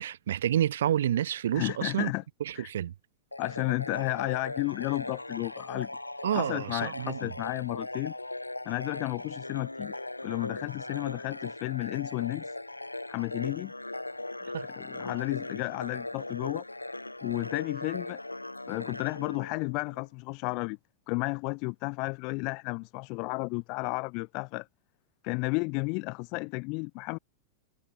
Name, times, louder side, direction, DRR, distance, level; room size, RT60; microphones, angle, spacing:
voice 1, 0.0-2.1 2.4-2.9 6.2-7.2 14.4-14.7, right 11 dB, 60° right, 7.9 m, -29 dB
voice 2, 1.5-2.2 2.5-2.7 3.4-5.9 6.3-8.1 8.6-12.6 13.1-13.7 14.6-16.6 17.2-18.2 18.7-20.8 21.1-24.7 25.2-27.2, left 32 dB, 45° left, 6.5 m, -32 dB
sound 1, 3.3-20.1, left 2 dB, 85° left, 7.6 m, -39 dB
figure-of-eight pair, 90°, 0 cm